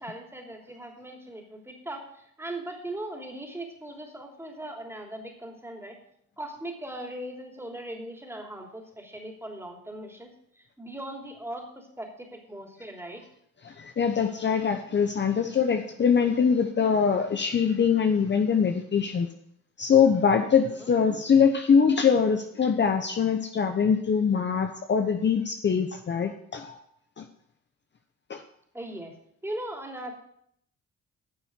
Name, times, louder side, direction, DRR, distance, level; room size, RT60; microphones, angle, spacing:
voice 1, 0.0-6.0 6.4-13.2 20.7-20.9 28.7-29.1 29.4-30.1, right 1 dB, 10° right, 1 dB, 3.0 m, -39 dB
voice 2, 13.6-19.3 19.8-26.8 27.2-27.3 28.3-28.4, left 6 dB, 35° left, 6 dB, 1.0 m, -23 dB
10.5 x 6.9 x 7.5 m, 0.71 s
cardioid pair, 90°, 30 cm